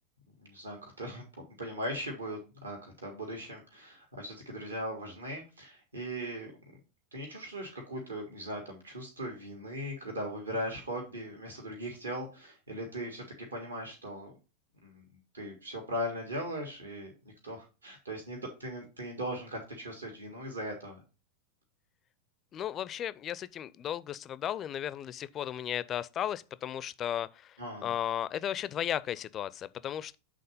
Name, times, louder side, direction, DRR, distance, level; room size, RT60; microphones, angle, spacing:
voice 1, 0.4-1.2 1.6-6.8 7.1-13.3 13.5-14.4 14.8-15.1 15.3-17.1 17.4-21.0 27.6-27.9, equal, 75° right, 1.8 m, -39 dB
voice 2, 22.5-30.2, left 10 dB, 30° left, 0.4 m, -35 dB
7.6 x 3.9 x 5.2 m
figure-of-eight pair, 90°, 0 cm